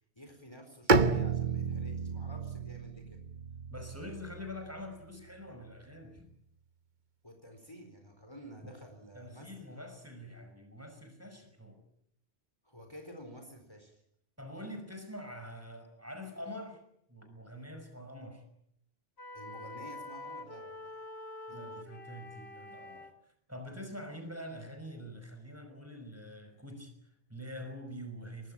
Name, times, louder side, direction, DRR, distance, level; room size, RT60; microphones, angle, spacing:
voice 1, 0.2-3.2 7.2-9.7 12.6-14.0 19.3-20.9 21.5-21.8, equal, 25° left, 4 dB, 4.3 m, -51 dB
Bowed string instrument, 0.9-4.8, right 4 dB, 45° right, 1.3 m, -31 dB
voice 2, 3.7-6.3 9.1-11.8 14.4-16.8 17.1-18.4 21.5-23.1 23.5-28.5, left 1 dB, 15° right, 5 dB, 5.6 m, -45 dB
sound 1, 19.2-23.1, left 2 dB, 70° left, 2.3 m, -46 dB
23.5 x 20.0 x 9.0 m, 0.72 s
omnidirectional pair, 1.1 m